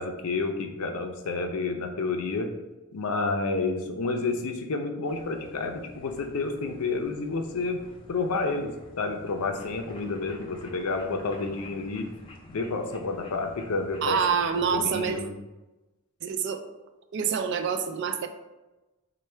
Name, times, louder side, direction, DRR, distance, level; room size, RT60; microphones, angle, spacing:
voice 1, 0.0-2.6 2.9-7.8 8.1-12.1 12.5-14.4 14.7-15.3, left 3 dB, 90° left, 5 dB, 0.5 m, -30 dB
sound 1, 5.1-15.2, left 1 dB, 25° left, 0.4 m, -50 dB
voice 2, 14.0-15.2 16.2-16.6 17.1-18.3, right 6 dB, 55° right, 7 dB, 0.3 m, -26 dB
4.4 x 2.2 x 3.2 m, 1.1 s
head